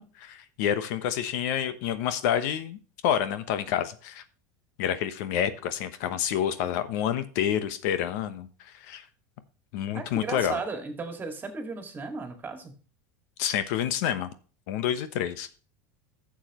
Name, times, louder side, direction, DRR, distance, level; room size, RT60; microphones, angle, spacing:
voice 1, 0.0-2.8 3.0-4.2 4.8-9.0 9.7-10.6 13.4-14.3 14.7-15.5, left 10 dB, 70° left, 12 dB, 1.0 m, -28 dB
voice 2, 9.9-12.8, right 4 dB, 20° right, 5 dB, 2.1 m, -35 dB
11.5 x 7.3 x 3.0 m, 0.38 s
supercardioid pair, 125°, 9 cm